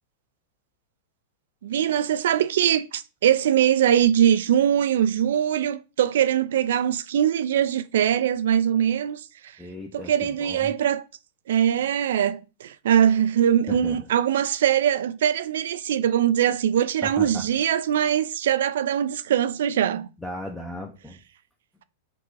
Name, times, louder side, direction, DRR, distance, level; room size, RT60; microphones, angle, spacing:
voice 1, 1.6-9.5 9.9-11.0 11.5-20.1, right 10 dB, 75° right, 0.3 m, -22 dB
voice 2, 9.6-10.7 13.7-14.0 17.0-17.4 20.2-21.2, left 1 dB, 5° left, 0.6 m, -36 dB
5.8 x 2.3 x 3.2 m
hypercardioid pair, 125°, 0 cm